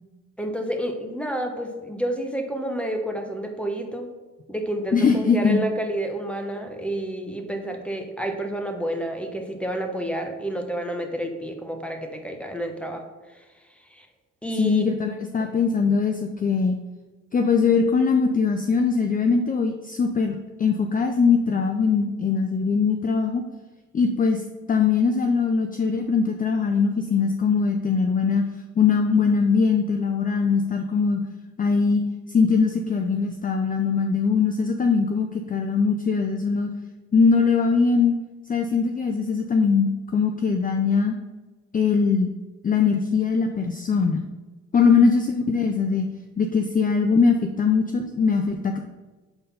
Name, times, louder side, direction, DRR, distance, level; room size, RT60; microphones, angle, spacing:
voice 1, 0.4-4.1 4.5-13.0 13.3-13.4 13.9-14.1 14.4-14.8 15.4-15.5, right 1 dB, 5° left, 4 dB, 1.0 m, -29 dB
voice 2, 4.9-5.6 14.6-16.8 17.3-23.4 23.9-24.4 24.7-28.4 28.8-31.2 31.6-32.0 32.3-36.7 37.1-38.2 38.5-41.1 41.7-42.3 42.6-44.2 44.7-46.1 46.4-48.8, left 5 dB, 30° left, 5 dB, 0.5 m, -21 dB
5.8 x 4.0 x 5.4 m, 1.2 s
cardioid pair, 90°, 30 cm